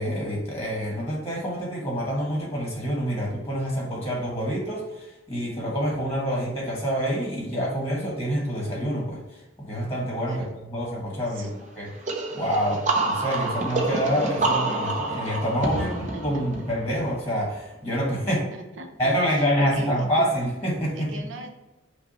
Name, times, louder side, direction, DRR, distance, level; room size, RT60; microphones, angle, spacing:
voice 1, 0.0-10.4 10.7-11.5 11.8-11.9 12.3-15.9 16.2-18.4 19.0-21.2, equal, 15° left, -2 dB, 1.2 m, -27 dB
voice 2, 10.2-10.5 11.3-11.5 15.7-16.4 18.2-20.2 20.9-21.5, right 2 dB, 70° right, 4 dB, 0.8 m, -41 dB
sound 1, 12.1-17.6, right 2 dB, 40° right, 0.7 m, -28 dB
5.7 x 2.2 x 4.1 m, 1.0 s
head